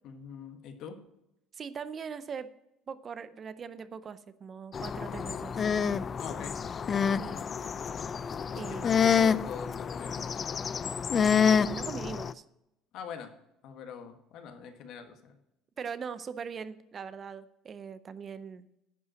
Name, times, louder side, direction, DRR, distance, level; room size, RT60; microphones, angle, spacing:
voice 1, 0.0-1.0 6.2-6.5 7.0-7.4 8.6-10.7 12.9-13.3 13.6-15.4, left 7 dB, 60° left, 6 dB, 1.4 m, -44 dB
voice 2, 1.5-2.5 2.9-5.6 7.2-7.4 8.6-8.9 11.6-12.4 15.8-18.7, right 6 dB, 30° right, 14 dB, 0.5 m, -41 dB
sound 1, 4.7-12.3, left 6 dB, 30° left, 0.3 m, -28 dB
11.0 x 5.5 x 7.5 m, 0.87 s
cardioid pair, 150°, 0 cm